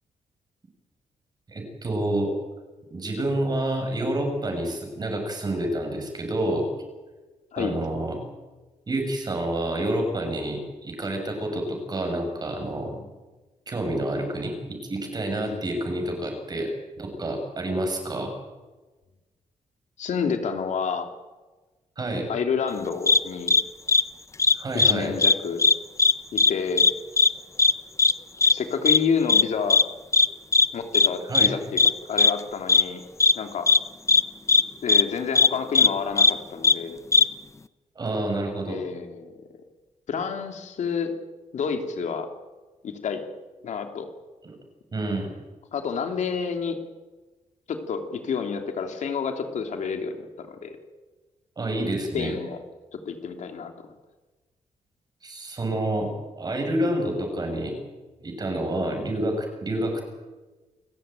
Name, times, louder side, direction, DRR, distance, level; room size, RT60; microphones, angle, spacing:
voice 1, 1.5-2.3 2.9-6.7 7.6-8.2 8.9-12.9 13.7-18.3 22.0-22.3 24.5-25.1 31.3-31.5 37.9-38.8 44.4-44.5 44.9-45.3 51.6-52.3 55.2-57.7 58.2-60.0, right 1 dB, 30° right, 3 dB, 6.6 m, -28 dB
voice 2, 20.0-21.1 22.3-23.6 24.8-25.6 26.3-26.8 28.5-29.8 30.7-31.8 32.1-33.0 33.3-33.7 34.8-37.0 38.7-39.3 40.1-41.1 41.5-42.3 42.8-43.2 43.6-44.1 45.7-46.8 47.7-50.8 52.1-52.6 52.9-53.7, left 6 dB, 70° left, 5 dB, 3.0 m, -29 dB
sound 1, 23.1-23.2 23.5-23.6 23.9-24.0 24.4-24.9 25.2-25.3 25.6-26.1 26.4-26.5 26.8-26.9 27.2-27.3 27.6-27.7 28.0-28.1 28.4-28.5 28.9-29.0 29.3-29.4 29.7-29.8 30.1-30.3 30.5-30.7 30.9-31.1 31.3-31.5 31.8-31.9 32.2-32.3 32.7-32.8 33.2-33.3 33.7-33.8 34.1-34.2 34.5-34.6 34.9-35.0 35.4-35.5 35.8-35.9 36.2-36.3 36.6-36.8 37.1-37.2, left 4 dB, 25° left, 0.7 m, -17 dB
28.5 x 15.0 x 9.1 m, 1.2 s
wide cardioid pair, 140°, 13 cm